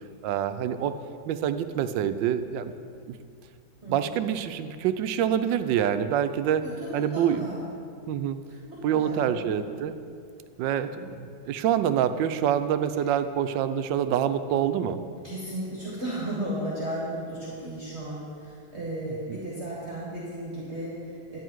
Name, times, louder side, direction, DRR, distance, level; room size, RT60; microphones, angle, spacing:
voice 1, 0.2-0.9 1.3-2.7 3.1-3.2 3.9-6.6 6.9-7.5 8.1-8.4 8.8-9.9 10.6-10.9 11.2-15.0, right 9 dB, 85° right, 11 dB, 1.3 m, -26 dB
voice 2, 3.8-4.1 6.6-7.7 8.5-9.6 10.9-11.1 13.0-13.1 15.2-21.4, right 1 dB, 40° right, -6 dB, 1.9 m, -35 dB
11.0 x 9.6 x 4.6 m, 2.3 s
omnidirectional pair, 2.0 m